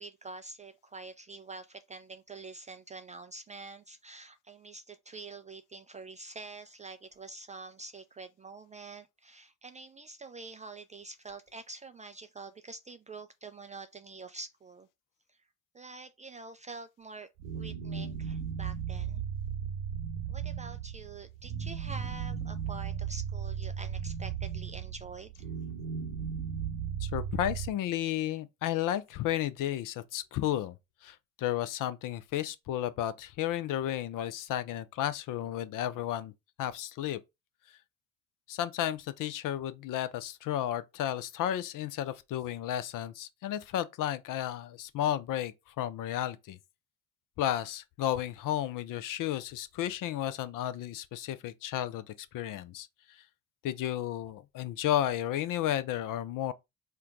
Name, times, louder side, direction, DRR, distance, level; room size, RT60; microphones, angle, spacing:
voice 1, 0.0-14.9 15.3-15.4 15.7-17.3 17.5-19.2 20.3-25.3, right 3 dB, 20° right, 0.3 m, -46 dB
sound 1, 17.4-27.7, right 8 dB, 65° right, 1.0 m, -36 dB
voice 2, 27.0-30.7 31.0-36.3 36.6-37.2 38.5-46.6 47.4-52.0 52.3-52.9 53.6-56.5, left 12 dB, 50° left, 0.6 m, -33 dB
4.4 x 2.2 x 3.7 m
hypercardioid pair, 55°, 41 cm